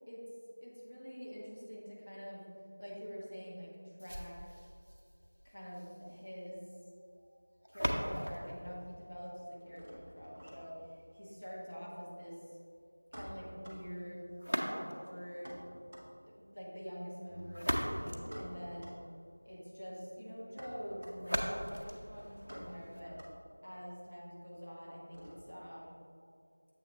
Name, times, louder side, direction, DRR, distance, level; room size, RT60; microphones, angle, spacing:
voice 1, 0.6-2.4 2.8-4.5 5.4-6.7 7.7-12.4 13.1-14.3 14.7-15.6 16.2-19.0 19.4-23.2 23.6-25.9, equal, 40° left, -5 dB, 1.4 m, -46 dB
sound 1, 4.0-10.0 14.4-15.2 17.2-19.2 21.2-23.2, equal, 50° right, 0.7 m, -40 dB
sound 2, 6.0-7.5 7.7-8.4 8.7-25.7, equal, 20° right, 0.6 m, -53 dB
7.2 x 5.6 x 3.6 m, 2.4 s
figure-of-eight pair, 175°, 0 cm